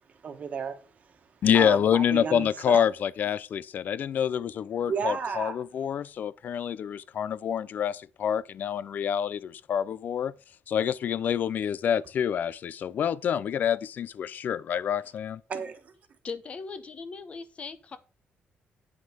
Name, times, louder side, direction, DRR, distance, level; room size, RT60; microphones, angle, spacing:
voice 1, 0.1-1.3 1.5-2.8 4.8-5.6 15.5-15.9, right 5 dB, 40° right, 1.4 m, -33 dB
voice 2, 1.4-10.3 10.7-15.4, left 8 dB, 50° left, 0.4 m, -27 dB
voice 3, 16.2-18.0, left 5 dB, 30° left, 0.8 m, -39 dB
9.6 x 5.9 x 5.0 m
wide cardioid pair, 180°, 4 cm